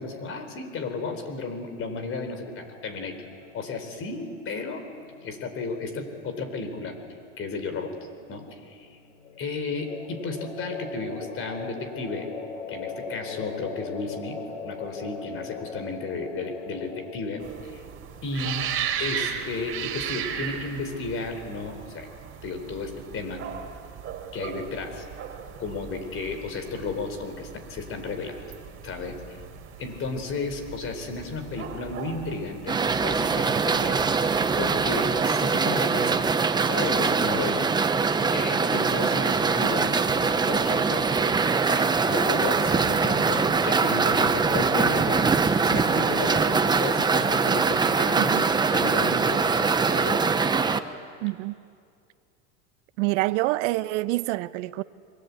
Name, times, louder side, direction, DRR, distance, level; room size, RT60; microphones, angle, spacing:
voice 1, 0.0-3.2 3.5-4.9 5.2-7.0 7.4-7.9 8.3-9.0 9.4-12.3 12.7-14.4 14.6-17.8 18.2-18.7 19.0-22.1 22.4-23.5 24.3-25.0 25.6-28.4 28.8-29.2 29.8-34.0 34.6-36.2 36.6-37.6 38.3-41.1 41.6-45.3 45.6-50.3, left 3 dB, 35° left, 4.2 m, -33 dB
sound 1, 2.4-17.1, left 5 dB, 85° left, 4.0 m, -41 dB
sound 2, 17.4-35.3, right 8 dB, 35° right, 3.5 m, -37 dB
sound 3, 32.7-50.8, right 5 dB, 10° right, 0.8 m, -23 dB
voice 2, 51.2-51.6 53.0-54.8, right 20 dB, 65° right, 1.0 m, -26 dB
29.5 x 23.0 x 8.4 m
supercardioid pair, 135°, 39 cm